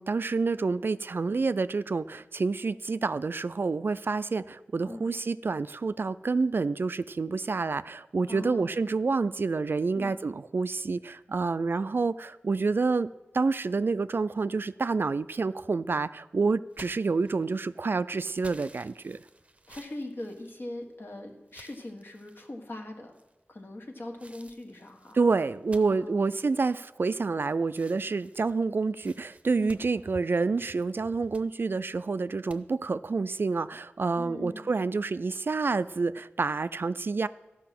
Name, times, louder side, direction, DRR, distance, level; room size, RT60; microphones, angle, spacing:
voice 1, 0.0-19.2 25.1-37.3, right 4 dB, 55° right, 15 dB, 0.3 m, -28 dB
voice 2, 8.3-8.7 9.9-10.2 19.7-23.1 23.5-25.2 25.8-26.3 29.5-29.8 34.2-34.7, left 1 dB, 55° left, 2 dB, 1.6 m, -41 dB
sound 1, 16.7-17.7 18.4-21.0 21.5-22.5 23.1-23.6 24.2-27.4 27.7-30.7 31.1-31.5 32.5-32.6, right 2 dB, 30° right, 0.7 m, -54 dB
13.5 x 5.8 x 5.9 m, 1.0 s
wide cardioid pair, 55°, 4 cm